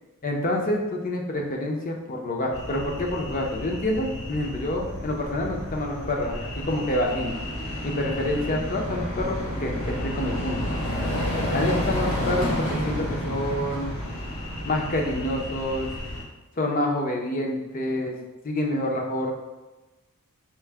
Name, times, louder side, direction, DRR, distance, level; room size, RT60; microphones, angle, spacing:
voice 1, 0.2-7.4 7.8-10.7 11.5-14.0 14.6-15.9 16.6-18.2 18.4-19.3, left 1 dB, 40° left, 1 dB, 0.5 m, -27 dB
sound 1, 2.5-16.2, equal, 75° left, 1.0 m, -31 dB
4.4 x 2.1 x 3.4 m, 1.1 s
head